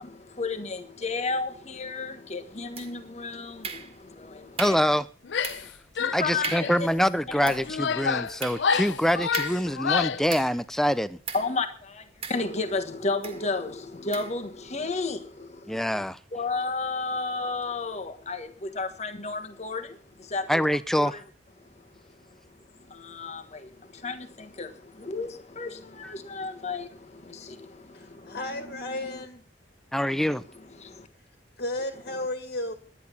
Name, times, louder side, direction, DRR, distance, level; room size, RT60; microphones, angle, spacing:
voice 1, 0.4-1.5 1.8-3.4 4.6-4.8 6.0-6.5 7.4-7.5 11.3-11.7 12.3-13.7 14.1-15.2 16.3-18.5 18.8-19.8 20.3-20.6 21.0-21.1 23.2-23.4 24.0-24.1 24.6-24.7 25.1-25.3 25.6-25.7 26.3-26.8, left 3 dB, 40° left, 1.4 m, -30 dB
sound 1, 2.7-3.2 3.6-4.2 4.6-4.9 5.4-5.8 6.1-6.2 6.4-6.8 7.3-10.7 11.2-11.6 12.2-12.8 13.2-13.5 14.1-14.4, right 5 dB, 35° right, 1.7 m, -38 dB
voice 2, 4.6-5.0 6.1-11.2 15.7-16.2 20.5-21.2 29.9-30.4, equal, ahead, 0.5 m, -25 dB
Female speech woman speaking / Yell, 5.2-5.7 6.0-6.8 7.5-10.3, left 6 dB, 85° left, 0.6 m, -28 dB
voice 3, 27.9-29.4 31.6-32.7, left 1 dB, 60° left, 2.0 m, -33 dB
11.0 x 10.0 x 7.0 m
head